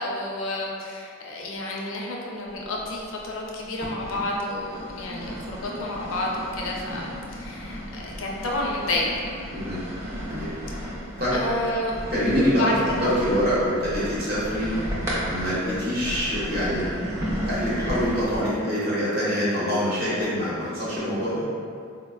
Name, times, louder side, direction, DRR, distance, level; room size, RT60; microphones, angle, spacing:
voice 1, 0.0-9.1 11.3-12.0 12.6-13.1, left 1 dB, 70° left, -2 dB, 0.5 m, -30 dB
sound 1, 2.6-3.3 3.8-18.4, equal, 15° right, 0.4 m, -33 dB
voice 2, 9.5-9.8 10.3-10.5 11.2-11.3 12.1-14.7 15.3-17.0 17.4-21.4, equal, 45° right, -9 dB, 0.8 m, -25 dB
4.0 x 2.1 x 2.2 m, 2.2 s
head